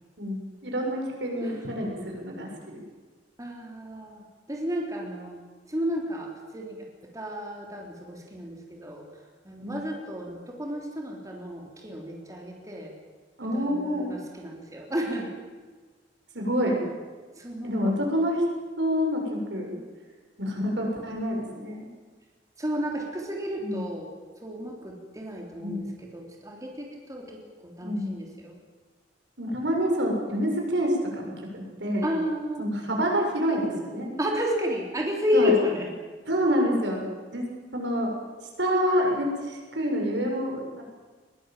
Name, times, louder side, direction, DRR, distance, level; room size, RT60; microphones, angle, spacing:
voice 1, 0.2-2.8 9.6-9.8 13.4-14.2 16.3-16.9 17.6-18.4 18.8-19.7 20.4-21.9 23.6-23.8 25.6-25.8 27.8-28.2 29.4-32.1 32.6-34.1 35.3-35.5 36.3-37.1 37.3-37.5 37.7-38.1 38.6-40.8, equal, 85° right, 0 dB, 7.0 m, -27 dB
voice 2, 3.4-5.4 5.7-9.0 9.4-12.9 13.5-15.3 17.3-18.0 22.6-24.1 24.4-28.6 32.0-32.7 34.2-35.9, left 1 dB, 20° right, 0 dB, 3.5 m, -31 dB
21.5 x 20.0 x 9.1 m, 1.4 s
head